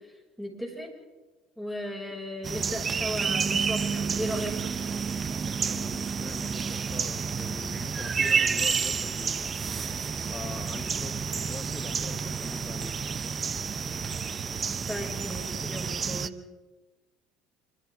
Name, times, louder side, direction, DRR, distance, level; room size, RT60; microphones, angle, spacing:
voice 1, 0.4-0.9 1.6-4.6 14.9-16.3, equal, ahead, 0 dB, 6.8 m, -35 dB
sound 1, 2.4-16.3, right 6 dB, 35° right, 0.8 m, -30 dB
voice 2, 5.5-9.5 10.3-13.0 13.2-13.5, left 5 dB, 30° left, 7 dB, 1.3 m, -44 dB
27.0 x 25.0 x 3.9 m, 1.1 s
hypercardioid pair, 65°, 0 cm